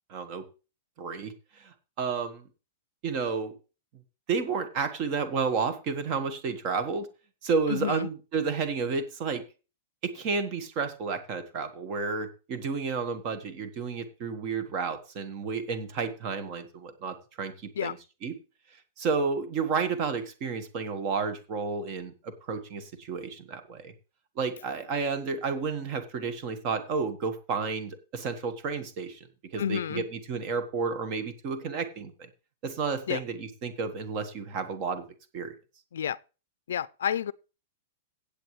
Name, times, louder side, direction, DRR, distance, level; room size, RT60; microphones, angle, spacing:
voice 1, 0.1-0.4 1.0-2.5 3.0-3.6 4.3-7.1 7.4-9.4 10.0-18.0 18.2-18.4 19.0-23.9 24.4-29.3 29.5-32.3 32.6-35.0 35.3-35.5, right 5 dB, 30° right, 1.4 m, -31 dB
voice 2, 7.7-8.1 17.8-17.9 29.6-30.0 33.1-33.2 35.9-36.2 36.7-37.3, left 9 dB, 85° left, 0.4 m, -30 dB
16.0 x 8.4 x 3.2 m
supercardioid pair, 175°, 0 cm